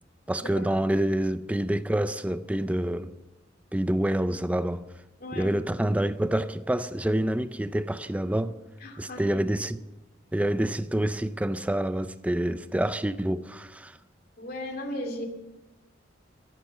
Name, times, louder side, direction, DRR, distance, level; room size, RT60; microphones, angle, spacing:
voice 1, 0.3-3.1 3.7-4.8 5.3-8.6 9.0-9.8 10.3-14.0, right 1 dB, 5° right, 0.4 m, -27 dB
voice 2, 5.2-5.5 8.8-9.4 14.4-15.3, left 1 dB, 50° left, 2.5 m, -36 dB
14.0 x 11.5 x 7.1 m
head